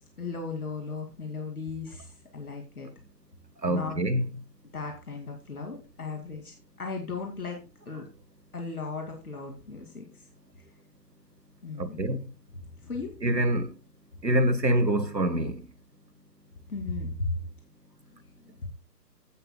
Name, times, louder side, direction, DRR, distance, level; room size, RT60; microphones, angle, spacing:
voice 1, 0.2-2.9 3.7-4.0 4.7-8.0 8.5-10.0 11.6-12.2 12.8-13.2 16.7-17.4 18.1-18.7, left 4 dB, 60° left, 2.5 m, -36 dB
voice 2, 3.6-4.2 11.8-12.2 13.2-13.7 14.2-15.6, right 1 dB, 90° right, 1.5 m, -25 dB
15.5 x 7.0 x 2.2 m
figure-of-eight pair, 140°, 49 cm